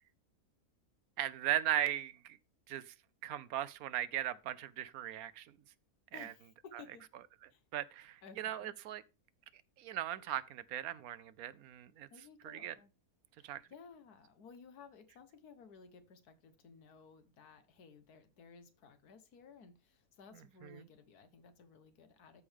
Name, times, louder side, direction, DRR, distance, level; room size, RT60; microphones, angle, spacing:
voice 1, 1.2-2.4 2.7-2.9 3.2-5.5 6.1-6.3 7.7-9.0 9.8-12.1 12.4-12.7 13.4-13.6 20.6-20.7, right 12 dB, 75° right, 1.1 m, -38 dB
voice 2, 6.1-7.1 7.5-7.6 8.2-8.7 12.1-12.9 13.4-22.4, left 5 dB, 85° left, 1.7 m, -57 dB
13.0 x 5.0 x 3.5 m
omnidirectional pair, 1.6 m